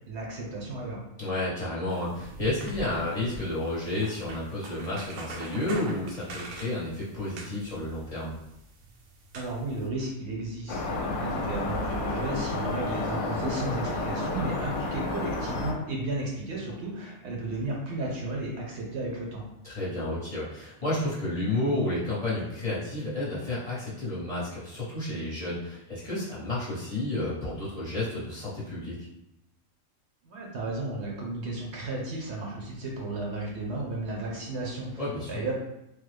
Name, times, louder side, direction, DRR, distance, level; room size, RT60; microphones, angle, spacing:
voice 1, 0.1-1.0 9.3-19.5 30.2-35.5, right 2 dB, 60° right, -2 dB, 0.9 m, -34 dB
voice 2, 1.2-8.4 19.6-29.0 35.0-35.3, left 2 dB, 35° left, -9 dB, 0.8 m, -31 dB
sound 1, 1.9-9.9, right 2 dB, 85° right, 1.0 m, -44 dB
sound 2, 10.7-15.7, left 2 dB, 70° left, 0.8 m, -31 dB
3.2 x 2.0 x 3.2 m, 0.86 s
omnidirectional pair, 1.4 m